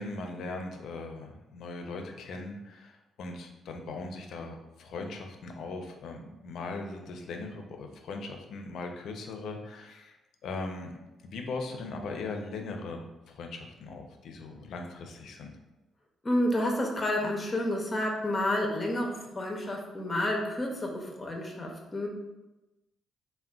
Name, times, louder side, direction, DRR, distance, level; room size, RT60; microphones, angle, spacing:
voice 1, 0.0-10.2 10.4-10.9 11.2-15.5, left 3 dB, 70° left, 3 dB, 0.4 m, -39 dB
voice 2, 16.2-22.1, left 1 dB, 25° left, 1 dB, 0.5 m, -30 dB
3.6 x 2.1 x 2.3 m, 1.0 s
cardioid pair, 90°, 0 cm